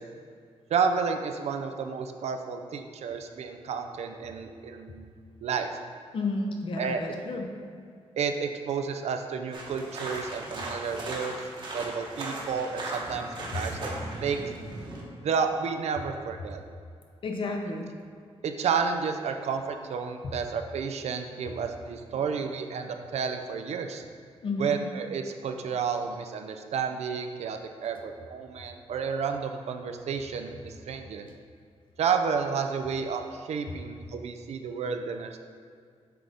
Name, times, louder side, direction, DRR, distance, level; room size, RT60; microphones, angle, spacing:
voice 1, 0.7-5.1 5.4-5.7 6.8-7.0 8.2-13.9 14.2-14.4 15.2-16.6 18.4-24.0 24.6-31.3 32.0-35.4, right 6 dB, 75° right, 6 dB, 0.5 m, -31 dB
voice 2, 6.1-7.5 13.5-13.6 17.2-17.9 24.4-24.7, left 3 dB, 50° left, 3 dB, 0.7 m, -31 dB
sound 1, 9.5-15.0, right 1 dB, 45° right, 1.0 m, -37 dB
7.7 x 3.8 x 3.5 m, 2.1 s
wide cardioid pair, 145°, 11 cm